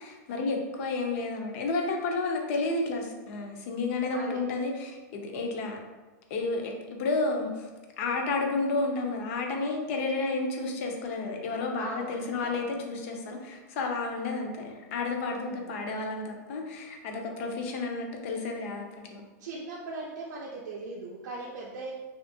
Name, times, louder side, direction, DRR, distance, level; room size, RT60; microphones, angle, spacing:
voice 1, 0.0-5.8 6.3-7.7 8.0-19.2, left 3 dB, 50° left, 2 dB, 0.5 m, -31 dB
voice 2, 4.1-4.4 11.8-12.8 15.3-15.8 19.4-21.9, right 3 dB, 85° right, -4 dB, 0.5 m, -40 dB
2.7 x 2.4 x 2.6 m, 1.2 s
supercardioid pair, 160°, 9 cm